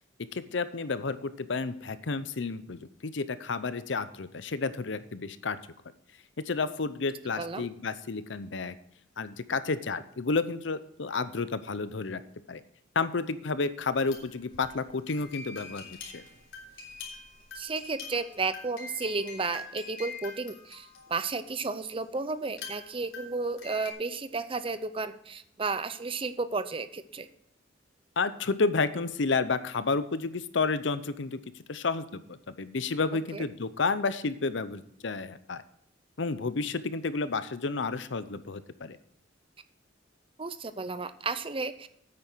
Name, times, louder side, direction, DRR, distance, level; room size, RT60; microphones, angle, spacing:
voice 1, 0.3-5.6 6.5-8.7 9.2-12.2 12.5-12.6 13.0-16.3 28.2-35.6 36.2-39.0, left 4 dB, 65° left, 14 dB, 0.7 m, -31 dB
voice 2, 7.4-7.7 17.5-27.3 33.3-33.5 40.4-41.9, right 4 dB, 30° right, 12 dB, 0.6 m, -33 dB
sound 1, 14.0-21.4 22.5-23.9, left 4 dB, 90° left, 3.4 m, -45 dB
9.7 x 8.7 x 4.5 m, 0.72 s
head